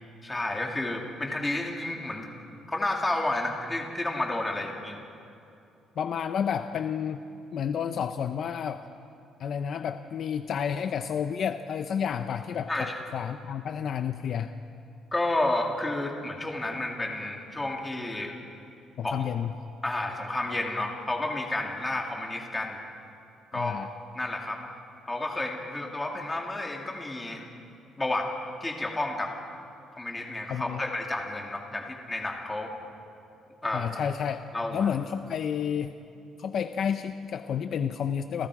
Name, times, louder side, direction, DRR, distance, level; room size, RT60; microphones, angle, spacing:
voice 1, 0.2-2.3 2.7-5.0 12.7-13.0 15.1-18.4 19.0-19.1 19.8-22.8 23.5-23.8 24.1-24.6 25.1-27.5 28.0-28.3 28.6-29.3 30.0-32.7 33.6-33.9 34.5-34.9, left 2 dB, 10° left, 1 dB, 2.6 m, -31 dB
voice 2, 6.0-7.2 7.5-8.8 9.4-14.5 19.0-19.5 23.5-23.9 30.5-30.8 33.7-34.4 34.7-36.0 36.4-38.5, left 8 dB, 45° left, 8 dB, 0.7 m, -30 dB
29.0 x 28.5 x 4.9 m, 2.7 s
cardioid pair, 170°, 0 cm